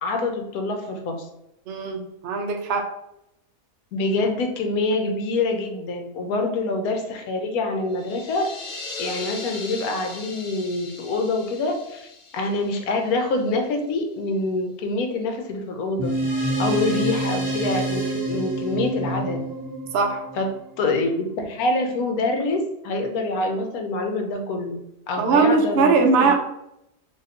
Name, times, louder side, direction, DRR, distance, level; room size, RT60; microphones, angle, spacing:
voice 1, 0.0-1.3 3.9-8.5 9.0-16.1 16.6-19.4 20.4-24.8 25.1-26.3, left 2 dB, 75° left, 4 dB, 1.1 m, -26 dB
voice 2, 1.7-2.9 19.9-20.2 25.2-26.3, right 4 dB, 65° right, 3 dB, 0.6 m, -20 dB
sound 1, 7.9-13.5, left 3 dB, 55° left, 0.5 m, -38 dB
sound 2, 16.0-20.8, right 1 dB, 30° right, 1.0 m, -27 dB
2.9 x 2.5 x 4.1 m, 0.83 s
omnidirectional pair, 1.6 m